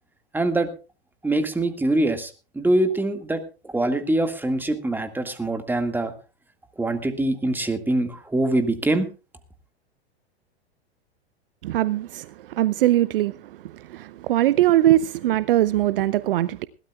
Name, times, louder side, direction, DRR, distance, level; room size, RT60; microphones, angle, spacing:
voice 1, 0.3-0.7 1.2-6.1 6.8-9.1, right 1 dB, 5° right, 1.9 m, -24 dB
voice 2, 11.6-13.4 13.9-16.7, right 14 dB, 55° right, 0.7 m, -21 dB
21.0 x 16.5 x 2.4 m
figure-of-eight pair, 100°, 32 cm